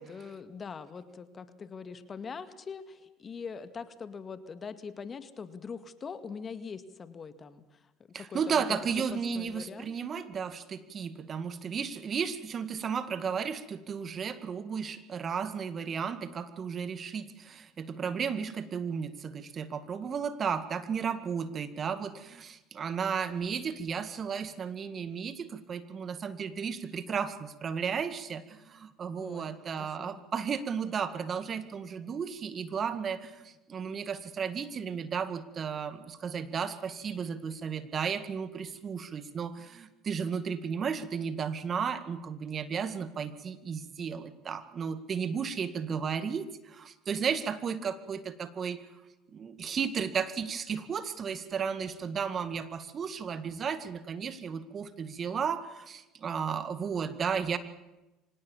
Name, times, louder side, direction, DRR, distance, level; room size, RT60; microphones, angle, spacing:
voice 1, 0.0-7.9 8.2-8.6 9.0-10.0 29.2-30.2, left 5 dB, 35° left, 11 dB, 2.0 m, -43 dB
voice 2, 8.1-48.8 49.3-57.6, right 6 dB, 40° right, 12 dB, 2.0 m, -34 dB
25.0 x 18.5 x 7.3 m, 1.0 s
supercardioid pair, 80°, 0 cm